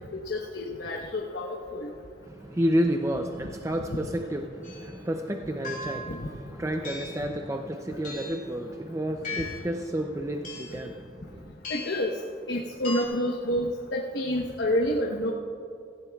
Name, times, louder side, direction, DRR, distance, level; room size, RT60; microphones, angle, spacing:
voice 1, 0.0-1.9 6.1-6.3 11.7-12.2 12.5-15.3, left 1 dB, 70° left, -1 dB, 1.1 m, -29 dB
voice 2, 2.3-11.5, equal, 15° right, 4 dB, 0.4 m, -30 dB
sound 1, 4.6-4.9 5.6-6.2 6.8-7.3 8.0-8.5 9.2-9.7 10.4-10.8 11.6-12.1 12.8-13.0, left 3 dB, 45° left, 3.2 m, -37 dB
17.5 x 16.0 x 2.3 m, 2.6 s
head